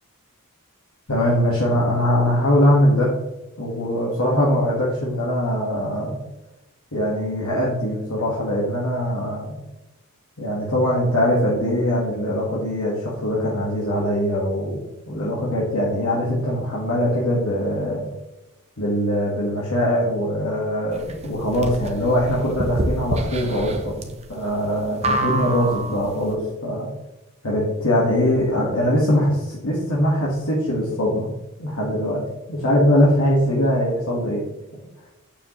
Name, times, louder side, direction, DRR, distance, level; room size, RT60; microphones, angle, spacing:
voice 1, 1.1-3.1 3.6-6.2 6.9-9.6 10.4-18.0 18.8-26.9 27.4-31.3 31.6-32.2 32.5-34.4, equal, 70° left, -6 dB, 1.8 m, -22 dB
sound 1, 20.9-26.2, right 1 dB, 30° right, 0.9 m, -27 dB
9.1 x 6.9 x 3.2 m, 1.0 s
head